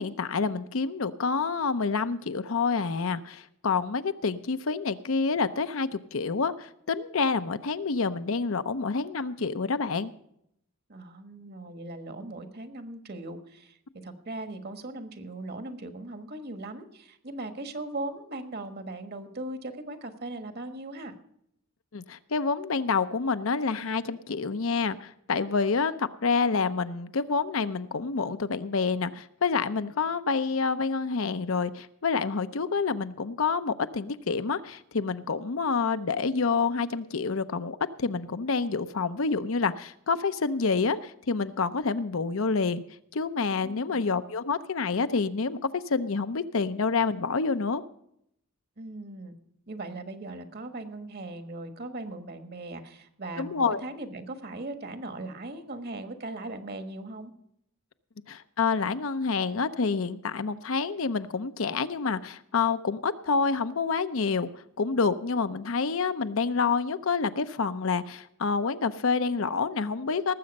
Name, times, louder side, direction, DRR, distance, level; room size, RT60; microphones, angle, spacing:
voice 1, 0.0-10.1 21.9-42.8 43.1-47.8 53.4-53.8 58.3-64.5 64.8-70.3, left 4 dB, 70° left, 11 dB, 0.7 m, -28 dB
voice 2, 10.9-13.8 14.0-21.1 43.6-44.0 48.8-49.4 49.7-57.3, right 2 dB, 50° right, 9 dB, 1.4 m, -39 dB
18.5 x 7.7 x 5.3 m, 0.75 s
head